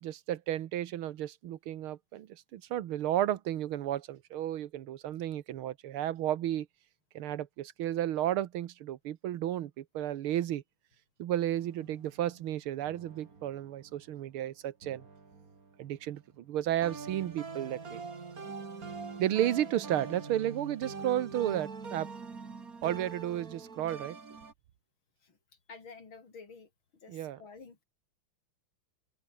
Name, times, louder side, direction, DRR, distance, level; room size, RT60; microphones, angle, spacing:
voice 1, 0.0-6.7 7.2-10.6 11.2-15.0 15.8-18.0 19.2-22.1 22.8-24.2 27.1-27.4, right 12 dB, 85° right, 1.9 m, -33 dB
sound 1, 11.6-14.1 14.8-16.3 16.8-24.5, right 4 dB, 45° right, 3.0 m, -44 dB
voice 2, 25.7-26.7 27.0-27.8, left 4 dB, 70° left, 4.3 m, -50 dB
omnidirectional pair, 2.3 m